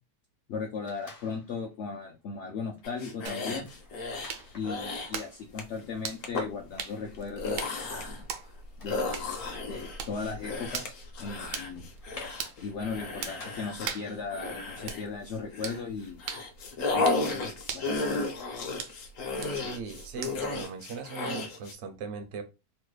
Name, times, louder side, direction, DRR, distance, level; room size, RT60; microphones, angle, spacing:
voice 1, 0.5-3.7 4.5-7.9 8.8-10.9 11.2-11.9 12.6-16.2 16.9-18.3, left 5 dB, 80° left, 1 dB, 0.6 m, -37 dB
sound 1, 0.8-1.8 2.2-2.4 2.7-14.0, left 3 dB, 35° left, 0.5 m, -54 dB
sound 2, 2.8-4.3 4.6-5.1 5.6-5.8 6.2-6.5 7.1-8.2 8.9-15.8 16.2-21.7, left 3 dB, 60° left, 1.0 m, -34 dB
sound 3, 3.3-20.6, right 6 dB, 90° right, 1.2 m, -42 dB
voice 2, 19.5-22.4, right 5 dB, 60° right, 7 dB, 0.7 m, -39 dB
3.2 x 2.2 x 3.1 m, 0.26 s
omnidirectional pair, 1.8 m